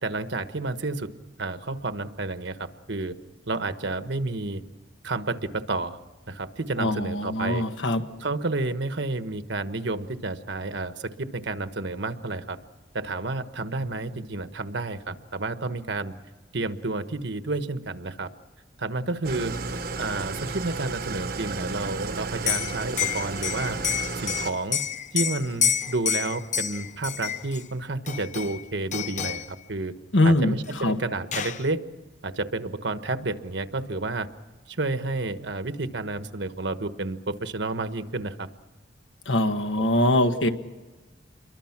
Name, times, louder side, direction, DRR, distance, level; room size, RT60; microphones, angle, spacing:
voice 1, 0.0-1.1 1.4-3.2 3.5-4.6 5.0-6.0 6.3-7.7 8.2-12.6 12.9-16.1 16.5-18.3 18.8-23.8 24.1-24.8 25.1-29.9 30.2-31.8 32.2-34.3 34.7-38.5 39.8-39.9, right 2 dB, 70° right, 10 dB, 1.3 m, -30 dB
voice 2, 6.8-8.0 30.1-30.5 30.8-31.0 39.3-40.5, left 1 dB, 80° left, 7 dB, 1.6 m, -22 dB
Engine starting / Idling, 19.2-24.5, right 4 dB, 50° right, 1.1 m, -33 dB
Liquid, 22.3-27.6 28.1-28.6 28.9-29.5 30.7-30.8 31.0-31.7, left 9 dB, 40° left, 0.8 m, -29 dB
28.5 x 23.0 x 6.0 m, 1.2 s
head